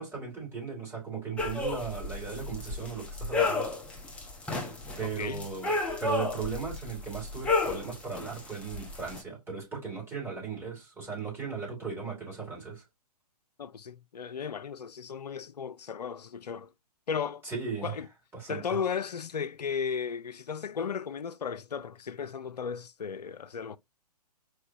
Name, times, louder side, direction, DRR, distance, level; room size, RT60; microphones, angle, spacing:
voice 1, 0.0-3.7 5.0-12.8 17.4-17.9 18.3-18.6, right 5 dB, 10° right, 2.8 m, -37 dB
sound 1, 1.4-9.2, left 3 dB, 5° left, 0.8 m, -33 dB
voice 2, 5.0-5.5 13.6-16.7 17.1-17.4 17.8-18.1 18.5-23.8, left 6 dB, 80° left, 0.5 m, -35 dB
4.8 x 3.2 x 2.7 m
figure-of-eight pair, 125°, 20 cm